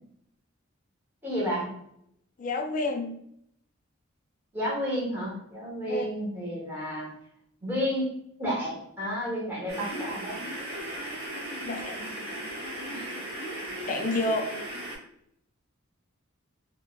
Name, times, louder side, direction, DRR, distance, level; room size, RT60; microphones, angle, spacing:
voice 1, 1.2-1.7 4.5-7.1 7.6-8.1 8.4-10.5 12.9-13.1, equal, 10° right, -6 dB, 1.0 m, -31 dB
voice 2, 2.4-3.2 5.9-6.1 11.6-12.5 13.9-14.5, left 2 dB, 40° left, 4 dB, 0.3 m, -30 dB
sound 1, 9.7-15.0, right 1 dB, 50° right, 1.2 m, -37 dB
3.2 x 2.1 x 2.3 m, 0.73 s
head